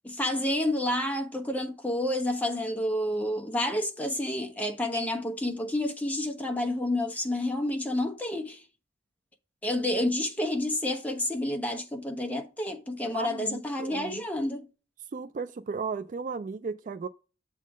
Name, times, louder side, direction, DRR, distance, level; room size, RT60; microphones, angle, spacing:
voice 1, 0.0-8.6 9.6-14.7, left 1 dB, 10° left, 1.0 m, -29 dB
voice 2, 13.1-14.2 15.1-17.1, right 5 dB, 40° right, 0.3 m, -35 dB
7.4 x 3.7 x 4.9 m
head